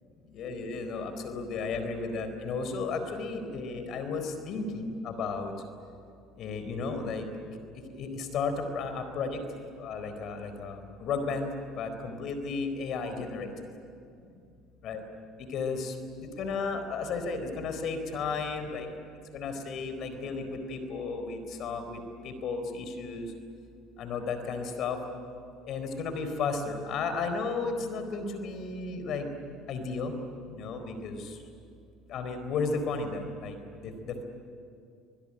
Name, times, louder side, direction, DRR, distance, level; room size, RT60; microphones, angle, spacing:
voice 1, 0.3-5.5 6.4-7.2 7.9-9.4 9.8-11.5 11.8-13.5 14.8-15.0 15.5-15.9 16.2-18.9 19.3-23.3 24.0-25.0 25.6-29.3 29.7-30.1 30.5-31.4 32.1-34.2, left 4 dB, 60° left, 8 dB, 4.3 m, -34 dB
24.5 x 21.0 x 10.0 m, 2.4 s
supercardioid pair, 85°, 0 cm